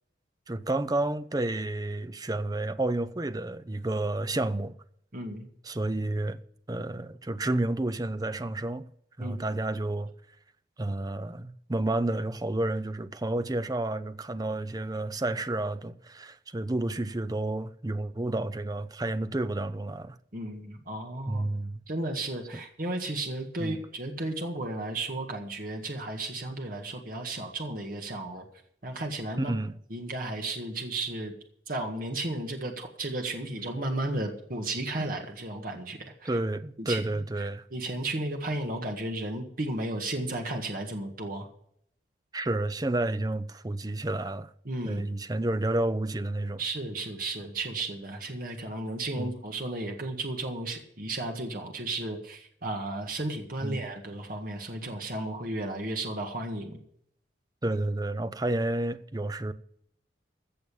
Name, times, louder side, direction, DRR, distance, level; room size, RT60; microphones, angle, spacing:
voice 1, 0.5-4.8 5.6-6.4 6.7-8.8 9.2-10.1 10.8-20.2 21.3-21.8 23.6-23.8 29.4-29.7 36.2-37.6 42.3-44.5 44.8-46.6 49.2-49.4 53.6-53.9 57.6-59.5, right 2 dB, 20° right, 0.5 m, -30 dB
voice 2, 5.1-5.5 9.2-9.4 20.3-21.4 21.9-28.4 28.8-29.5 29.9-31.3 31.7-36.4 36.8-37.0 37.7-41.5 44.6-45.1 46.6-56.8, right 2 dB, 50° right, 1.7 m, -34 dB
15.0 x 6.9 x 7.1 m
head